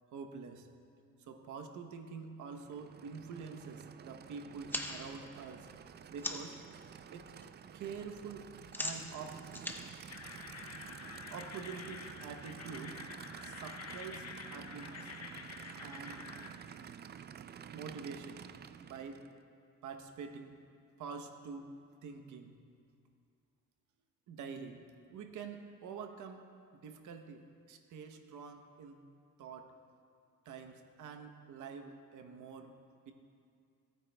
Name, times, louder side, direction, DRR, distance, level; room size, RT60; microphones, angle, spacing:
voice 1, 0.1-0.7 1.2-5.7 6.1-6.7 7.1-7.4 7.7-9.5 11.3-13.2 13.4-15.1 15.8-16.3 17.7-18.4 18.8-19.3 19.8-20.6 21.0-22.6 24.3-29.0 29.4-29.8 30.4-32.8 33.1-33.2, right 5 dB, 75° right, 6 dB, 0.9 m, -47 dB
Aircraft / Idling, 2.4-19.4, right 8 dB, 35° right, 0.4 m, -50 dB
sound 1, 4.5-6.6 7.0-7.5 7.7-11.0, left 1 dB, 5° left, 0.8 m, -42 dB
sound 2, 10.1-16.5, left 5 dB, 55° left, 0.9 m, -48 dB
17.5 x 8.9 x 2.2 m, 2.4 s
cardioid pair, 90°, 30 cm